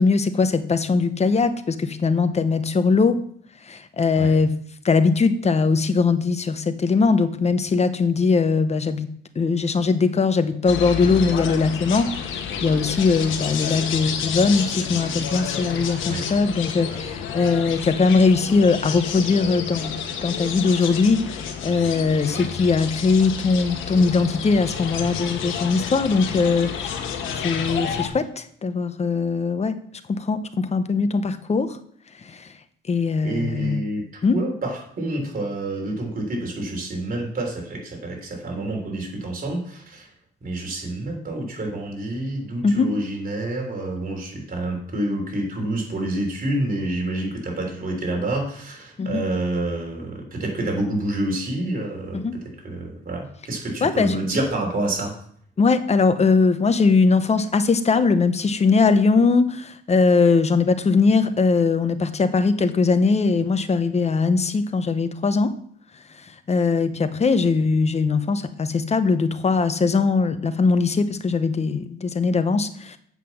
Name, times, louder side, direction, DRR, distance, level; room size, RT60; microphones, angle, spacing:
voice 1, 0.0-3.2 3.6-4.5 4.8-29.8 30.1-31.8 32.2-32.5 32.9-33.8 34.2-34.3 42.6-42.9 49.0-49.2 52.1-52.3 53.8-54.2 55.6-65.5 66.2-73.0, left 4 dB, 35° left, 10 dB, 0.9 m, -20 dB
sound 1, 10.7-28.1, left 7 dB, 85° left, 1.2 m, -30 dB
voice 2, 33.2-34.0 34.3-40.1 40.4-55.1, right 1 dB, 45° right, 1 dB, 3.4 m, -28 dB
7.8 x 5.9 x 7.1 m, 0.62 s
cardioid pair, 90°, 20 cm